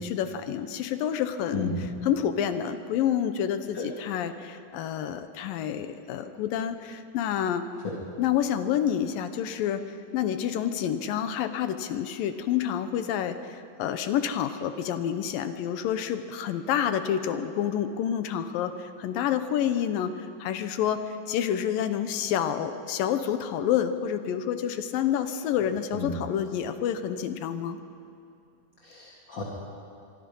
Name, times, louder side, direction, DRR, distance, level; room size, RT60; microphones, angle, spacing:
voice 1, 0.0-7.6 8.2-27.8, left 9 dB, 75° left, 10 dB, 2.5 m, -28 dB
voice 2, 28.8-29.4, left 5 dB, 35° left, -2 dB, 2.5 m, -33 dB
24.0 x 24.0 x 5.5 m, 2.6 s
omnidirectional pair, 4.4 m